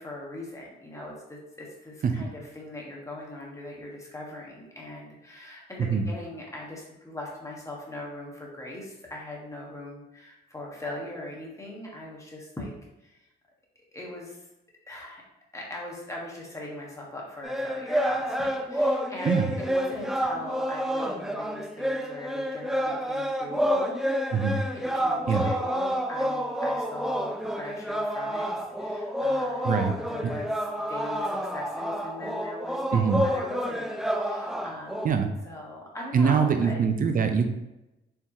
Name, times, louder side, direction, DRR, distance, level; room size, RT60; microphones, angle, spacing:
voice 1, 0.0-12.7 13.0-13.2 13.9-14.4 14.9-15.2 15.5-24.0 24.6-24.7 24.9-28.5 28.8-35.1 35.4-36.8, left 1 dB, 15° left, -3 dB, 1.4 m, -40 dB
sound 1, 17.4-35.1, equal, ahead, 0.5 m, -29 dB
voice 2, 32.9-33.2 35.0-35.3 36.1-37.5, right 6 dB, 45° right, 7 dB, 0.6 m, -23 dB
4.6 x 3.5 x 2.9 m, 0.94 s
cardioid pair, 90°, 20 cm